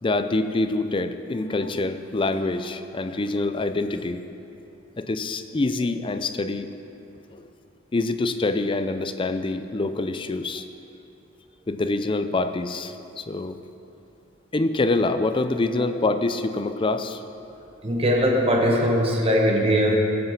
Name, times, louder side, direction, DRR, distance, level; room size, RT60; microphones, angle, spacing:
voice 1, 0.0-4.2 5.0-6.7 7.4-7.5 7.9-10.7 11.7-13.6 14.5-17.2, left 2 dB, 25° left, 10 dB, 0.4 m, -25 dB
voice 2, 17.8-19.9, equal, 30° right, 0 dB, 1.2 m, -20 dB
15.5 x 5.7 x 5.7 m, 2.7 s
head